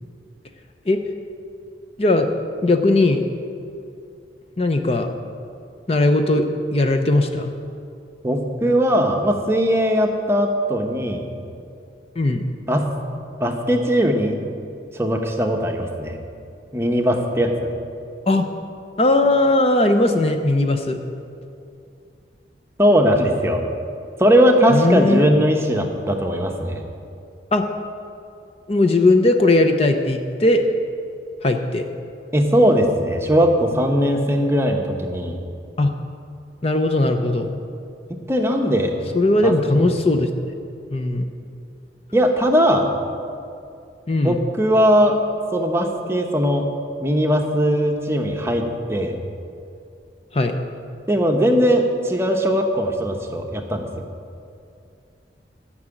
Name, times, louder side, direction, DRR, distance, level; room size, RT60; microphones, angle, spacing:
voice 1, 2.6-3.2 4.6-5.1 5.9-6.5 6.7-7.5 12.2-12.4 18.3-18.4 19.0-21.0 24.7-25.3 27.5-27.6 28.7-30.6 31.4-31.8 35.8-35.9 36.6-37.6 39.1-40.3 40.9-41.2 44.1-44.4 50.3-50.6, left 2 dB, 35° left, 6 dB, 0.6 m, -18 dB
voice 2, 8.2-11.2 12.7-12.9 13.4-14.4 15.0-16.2 16.7-17.7 22.8-23.6 24.2-26.8 32.3-35.4 38.3-38.9 39.4-39.5 42.1-42.9 44.2-45.2 45.5-46.7 47.0-49.2 51.1-54.1, equal, 15° right, 3 dB, 0.9 m, -19 dB
13.5 x 6.1 x 8.9 m, 2.6 s
head